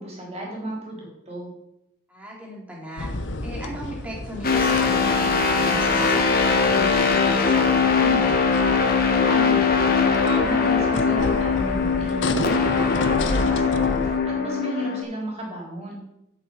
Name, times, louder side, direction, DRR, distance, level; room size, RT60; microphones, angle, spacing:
voice 1, 0.0-1.5 9.3-16.0, right 1 dB, 35° right, -3 dB, 3.9 m, -33 dB
voice 2, 2.1-3.1 3.4-8.5, equal, 5° right, -4 dB, 3.1 m, -36 dB
sound 1, 3.0-14.2, left 2 dB, 75° left, 0.9 m, -32 dB
sound 2, 4.4-15.0, left 5 dB, 50° left, 1.6 m, -21 dB
11.5 x 7.7 x 4.8 m, 0.85 s
head